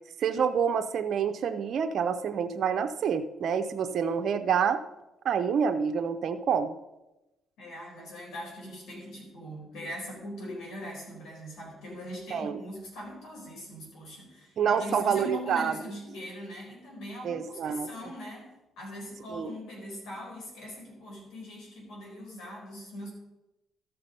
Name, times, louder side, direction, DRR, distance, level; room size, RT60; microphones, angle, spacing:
voice 1, 0.2-4.8 5.2-6.8 12.3-12.6 14.6-15.8 17.2-17.9 19.3-19.5, right 7 dB, 60° right, 7 dB, 0.5 m, -27 dB
voice 2, 7.6-18.5 18.8-23.1, left 1 dB, 85° left, -2 dB, 4.4 m, -41 dB
13.5 x 5.7 x 5.3 m, 0.99 s
cardioid pair, 90°, 0 cm